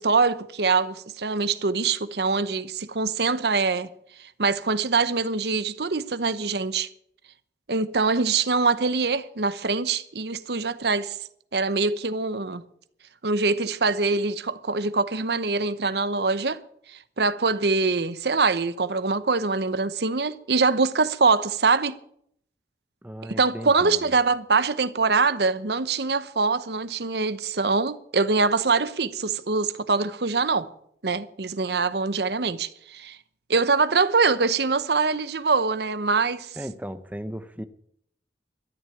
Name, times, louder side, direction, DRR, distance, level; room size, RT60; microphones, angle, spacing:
voice 1, 0.0-3.9 4.4-6.9 7.7-11.2 11.5-12.6 13.2-16.6 16.9-22.0 23.2-30.7 31.0-33.2 33.5-36.6, right 4 dB, 70° right, 0.9 m, -24 dB
voice 2, 23.0-24.1 36.6-37.6, equal, 10° right, 0.9 m, -36 dB
12.5 x 10.5 x 8.5 m
head